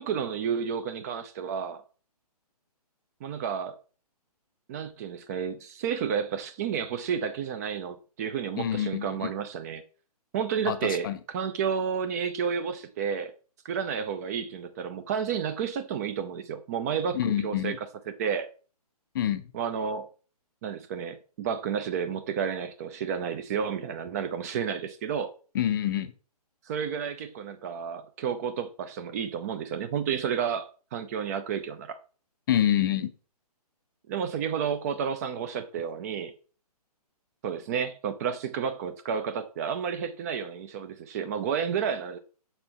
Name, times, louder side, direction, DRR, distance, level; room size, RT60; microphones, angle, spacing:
voice 1, 0.0-1.8 3.2-3.8 4.7-9.8 10.3-11.1 11.3-13.3 13.6-17.8 18.2-18.5 19.5-20.1 20.6-25.3 26.7-31.9 34.1-36.3 37.4-42.2, right 7 dB, 25° right, 0.5 m, -31 dB
voice 2, 8.6-9.3 10.7-11.2 17.1-17.8 19.1-19.4 25.5-26.1 32.5-33.1, left 11 dB, 35° left, 0.5 m, -27 dB
6.6 x 4.4 x 3.5 m
hypercardioid pair, 140°, 20 cm